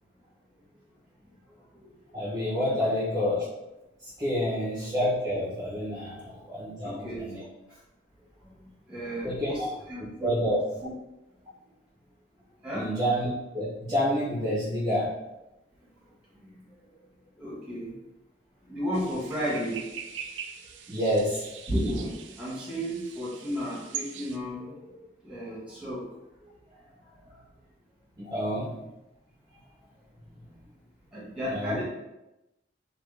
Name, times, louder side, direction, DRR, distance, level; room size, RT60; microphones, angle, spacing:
voice 1, 1.8-3.5 4.2-7.4 9.2-9.7 10.2-10.6 12.7-13.3 13.5-15.1 20.9-21.4 28.2-28.8 31.5-31.8, equal, 20° right, -8 dB, 0.7 m, -28 dB
voice 2, 6.8-7.3 8.9-10.3 10.8-10.9 12.6-12.9 17.4-17.9 18.7-19.8 21.7-24.9 25.2-26.0 31.1-31.8, equal, 5° right, -8 dB, 1.5 m, -33 dB
sound 1, 18.9-24.4, right 7 dB, 75° right, 0.3 m, -42 dB
3.2 x 2.2 x 3.2 m, 0.95 s
head